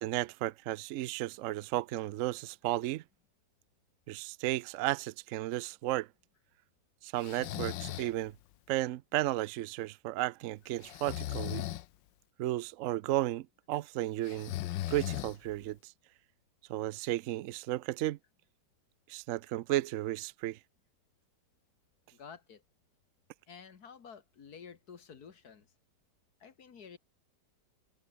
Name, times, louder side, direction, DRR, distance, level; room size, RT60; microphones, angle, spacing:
voice 1, 0.0-3.0 4.1-6.1 7.0-8.3 8.7-11.6 12.4-14.5 14.9-15.9 16.7-18.2 19.1-20.6, right 15 dB, 80° right, 0.7 m, -34 dB
Breathing, 7.2-8.1 10.8-11.9 14.2-15.6, left 14 dB, 90° left, 1.4 m, -37 dB
voice 2, 22.1-22.6 23.5-25.7 26.4-27.0, left 6 dB, 60° left, 2.1 m, -51 dB
open air
omnidirectional pair, 1.9 m